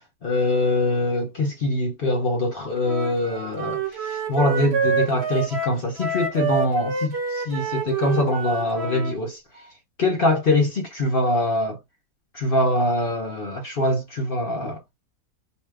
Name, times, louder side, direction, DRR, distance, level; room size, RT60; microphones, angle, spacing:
voice 1, 0.2-9.4 10.0-11.8 12.3-14.8, left 1 dB, 50° left, 0.7 m, -23 dB
Wind instrument woodwind instrument, 2.8-9.2, right 4 dB, 50° right, 1.0 m, -27 dB
2.7 x 2.3 x 3.2 m
omnidirectional pair, 1.6 m